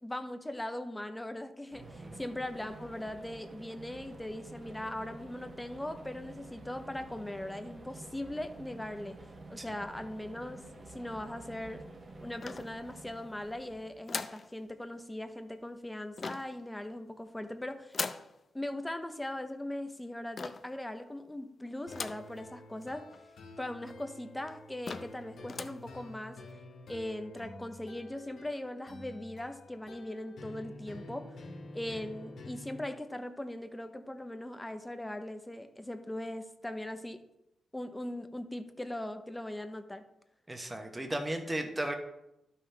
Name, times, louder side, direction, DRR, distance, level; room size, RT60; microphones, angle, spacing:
voice 1, 0.0-9.2 9.5-11.8 12.2-18.0 18.5-23.1 23.6-26.4 26.9-31.4 31.7-37.2 37.7-40.1, left 1 dB, 10° left, 8 dB, 0.7 m, -40 dB
sound 1, 1.7-14.1, right 2 dB, 35° right, 1.1 m, -50 dB
voice 2, 1.8-2.2 9.6-9.7 40.5-41.9, right 1 dB, 15° right, 4 dB, 1.0 m, -35 dB
sound 2, 12.4-13.2 14.1-14.5 16.2-16.6 17.9-18.3 20.4-20.8 21.9-22.3 22.8-22.9 23.1-23.2 24.0-24.1 24.5-24.6 24.9-25.2 25.5-25.8, left 4 dB, 45° left, 0.5 m, -39 dB
sound 3, 21.9-32.9, left 2 dB, 70° left, 1.8 m, -49 dB
12.0 x 5.7 x 3.3 m, 0.88 s
cardioid pair, 100°, 0 cm